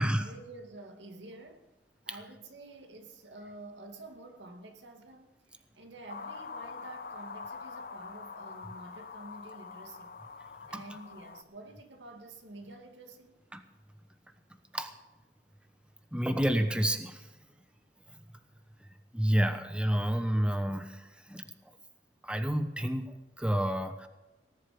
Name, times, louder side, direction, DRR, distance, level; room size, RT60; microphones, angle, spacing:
voice 1, 0.0-1.7 2.0-13.4, right 2 dB, 85° right, 2.3 m, -49 dB
sound 1, 6.1-11.4, left 5 dB, 55° left, 0.8 m, -44 dB
voice 2, 16.1-17.3 19.1-21.5 22.2-24.1, equal, 5° right, 1.0 m, -29 dB
19.0 x 11.0 x 5.3 m
head